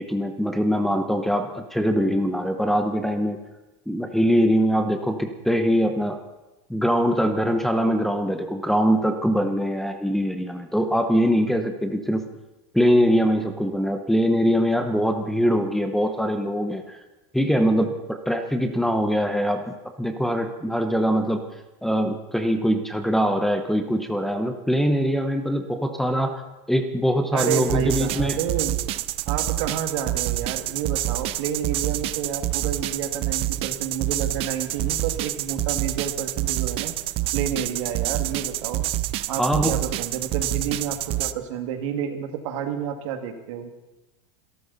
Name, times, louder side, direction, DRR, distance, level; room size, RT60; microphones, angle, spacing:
voice 1, 0.0-3.4 3.9-6.2 6.7-12.2 12.7-17.0 17.3-21.4 21.8-26.4 26.7-28.4 39.4-39.8, equal, ahead, 4 dB, 0.9 m, -22 dB
voice 2, 27.3-28.8 29.3-37.0 37.3-38.9 39.3-43.7, right 8 dB, 70° right, 6 dB, 2.2 m, -30 dB
sound 1, 27.4-41.3, right 16 dB, 35° right, 0.5 m, -27 dB
26.5 x 12.5 x 4.1 m, 1.0 s
supercardioid pair, 160°, 17 cm